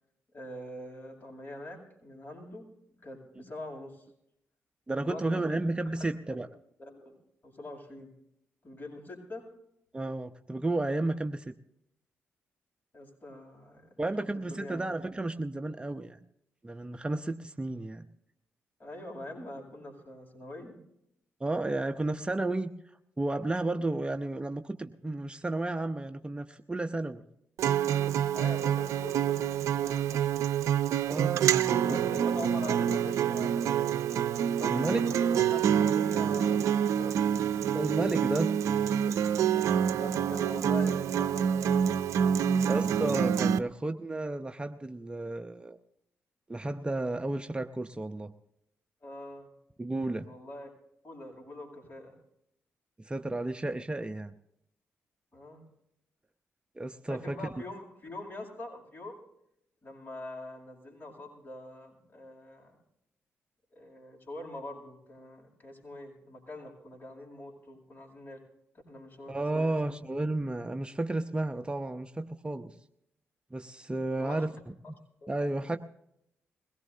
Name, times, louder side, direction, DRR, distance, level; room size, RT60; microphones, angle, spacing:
voice 1, 0.3-2.7 3.0-4.0 4.9-5.6 6.3-6.4 6.8-7.1 7.4-8.1 8.6-9.5 12.9-13.9 14.2-14.9 18.8-20.8 28.3-30.3 31.6-33.9 34.4-37.2 39.5-42.1 49.0-49.5 50.1-50.7 51.0-52.2 55.3-55.7 57.1-59.2 59.8-62.7 63.7-68.4 68.9-69.8 74.1-74.5 75.2-75.4, left 1 dB, 40° left, -1 dB, 7.9 m, -44 dB
voice 2, 4.9-6.5 9.9-11.5 14.0-16.2 16.6-18.1 21.4-22.7 23.2-27.2 31.0-31.8 34.7-35.0 37.7-38.5 42.7-45.8 46.5-48.3 49.8-50.2 53.0-54.3 56.8-57.4 69.3-72.7 73.5-74.5 74.9-75.0 75.3-75.8, right 2 dB, 20° right, 6 dB, 0.8 m, -32 dB
Acoustic guitar, 27.6-43.6, right 9 dB, 80° right, 0.5 m, -27 dB
22.0 x 17.5 x 2.8 m, 0.78 s
cardioid pair, 60°, 5 cm